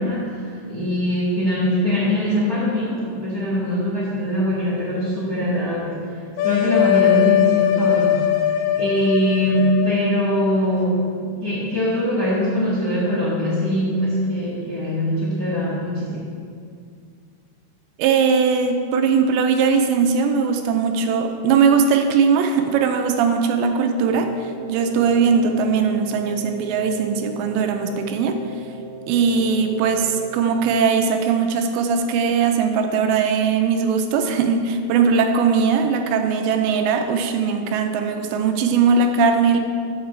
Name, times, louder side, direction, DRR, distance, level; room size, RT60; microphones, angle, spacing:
voice 1, 0.0-8.2 8.8-16.2, equal, 40° left, -8 dB, 1.3 m, -22 dB
sound 1, 6.4-10.8, left 11 dB, 75° left, 2.4 m, -20 dB
voice 2, 18.0-28.4 29.1-39.6, right 5 dB, 85° right, 6 dB, 2.8 m, -19 dB
sound 2, 24.1-30.4, right 2 dB, 50° right, 2.3 m, -39 dB
8.7 x 5.8 x 6.8 m, 2.3 s
omnidirectional pair, 5.1 m